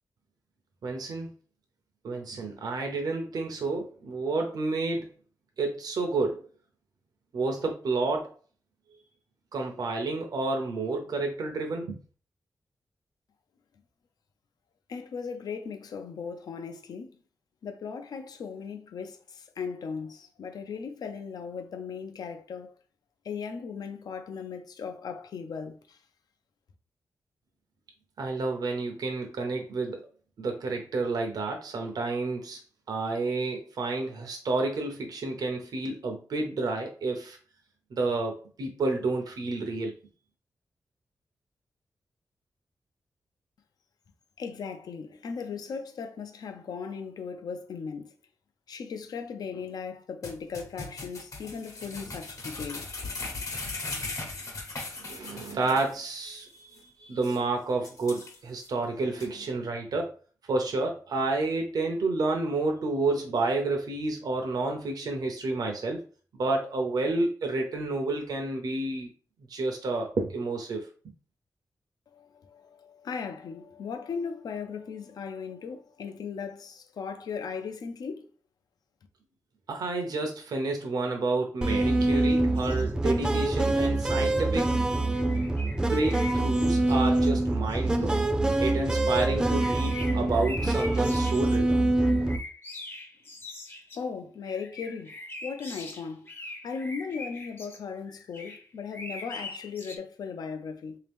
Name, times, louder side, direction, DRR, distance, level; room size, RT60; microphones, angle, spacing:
voice 1, 0.8-1.3 2.0-5.1 5.6-6.4 7.3-8.3 9.5-12.0 28.2-30.0 30.4-32.6 32.9-37.4 37.9-39.9 55.0-60.1 60.5-66.0 66.3-69.1 69.5-70.9 79.7-84.9 85.9-88.2 88.6-91.8, right 3 dB, 80° right, 0.7 m, -30 dB
voice 2, 14.9-17.1 17.6-22.8 23.2-26.0 44.4-48.1 48.7-52.9 53.6-53.7 72.1-78.3 94.0-95.1 95.4-96.3 96.6-101.0, left 5 dB, 85° left, 0.5 m, -37 dB
sound 1, 50.2-56.0 56.3-56.4 56.8-56.9 57.2-57.4 57.8-58.7 59.2-59.3, left 3 dB, 55° left, 1.0 m, -38 dB
sound 2, 81.6-92.4, right 2 dB, 10° right, 0.4 m, -25 dB
sound 3, 82.6-84.0 85.1-87.4 87.7-88.1 89.3-91.6 92.0-94.0 94.4-97.8 98.1-100.0, left 2 dB, 35° left, 0.6 m, -43 dB
3.4 x 2.8 x 3.4 m
wide cardioid pair, 115°, 7 cm